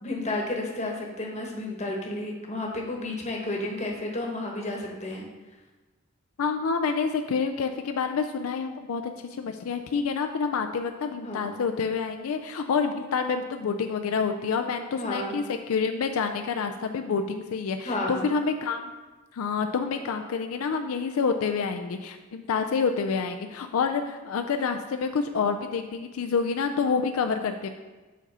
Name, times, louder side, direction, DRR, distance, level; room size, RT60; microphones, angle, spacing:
voice 1, 0.0-5.3 11.2-11.5 15.0-15.4 17.8-18.3, left 2 dB, 30° left, 0 dB, 1.1 m, -31 dB
voice 2, 6.4-18.8 19.3-27.7, left 5 dB, 80° left, 6 dB, 0.4 m, -28 dB
7.4 x 4.1 x 5.4 m, 1.2 s
head